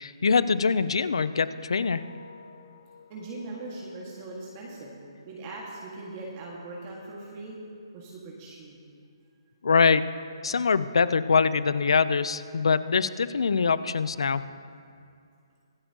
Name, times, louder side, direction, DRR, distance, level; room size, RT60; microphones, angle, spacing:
voice 1, 0.0-2.0 9.6-10.1 10.4-14.5, left 5 dB, 80° left, 15 dB, 0.5 m, -23 dB
sound 1, 1.5-6.3, left 5 dB, 55° left, 1.4 m, -54 dB
voice 2, 3.1-4.9 5.2-7.6 7.9-8.8, right 2 dB, 30° right, -3 dB, 1.7 m, -40 dB
24.5 x 8.8 x 2.9 m, 2.3 s
hypercardioid pair, 160°, 3 cm